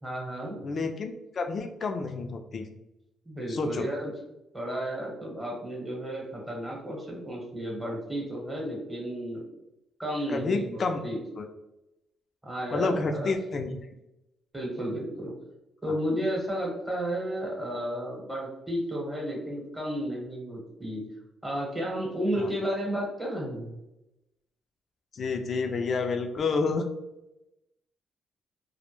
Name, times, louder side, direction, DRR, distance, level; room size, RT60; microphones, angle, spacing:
voice 1, 0.0-0.6 3.2-4.1 4.5-9.4 10.0-11.2 12.4-13.3 14.5-15.3 15.8-21.0 21.4-23.8, equal, 15° right, -3 dB, 0.9 m, -32 dB
voice 2, 0.6-2.7 3.5-3.9 10.3-11.0 11.4-11.5 12.7-13.8 22.4-22.5 25.1-26.9, left 4 dB, 50° left, 6 dB, 0.3 m, -29 dB
2.1 x 2.0 x 3.0 m, 0.93 s
cardioid pair, 90°, 0 cm